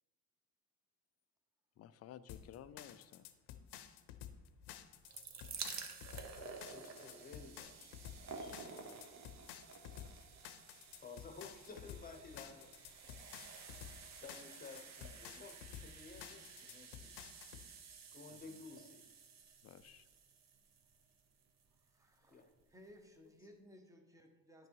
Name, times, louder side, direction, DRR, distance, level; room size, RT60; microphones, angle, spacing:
voice 1, 1.8-3.3 18.3-18.6 19.6-20.1, left 10 dB, 40° left, 13 dB, 0.4 m, -55 dB
sound 1, 2.3-17.7, left 10 dB, 80° left, 0.8 m, -52 dB
sound 2, 4.8-21.8 22.6-22.7 22.9-23.0, right 5 dB, 45° right, 0.9 m, -52 dB
voice 2, 6.4-9.0 11.0-13.4 13.8-17.5 18.1-19.1 22.3-22.5, left 4 dB, 20° left, 6 dB, 0.9 m, -55 dB
voice 3, 21.7-24.7, equal, 10° right, 5 dB, 0.9 m, -61 dB
10.5 x 6.0 x 4.6 m, 1.1 s
cardioid pair, 155°, 39 cm